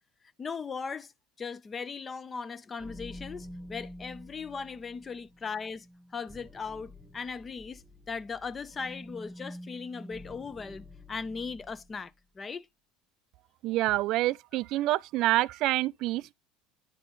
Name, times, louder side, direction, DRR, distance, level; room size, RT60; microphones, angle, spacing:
voice 1, 0.4-1.1 1.4-5.9 6.1-12.7, left 5 dB, 25° left, 0.6 m, -38 dB
sound 1, 2.8-12.0, left 1 dB, 10° right, 1.1 m, -48 dB
voice 2, 13.6-16.3, right 16 dB, 60° right, 0.3 m, -27 dB
9.9 x 4.1 x 3.1 m
supercardioid pair, 95°, 0 cm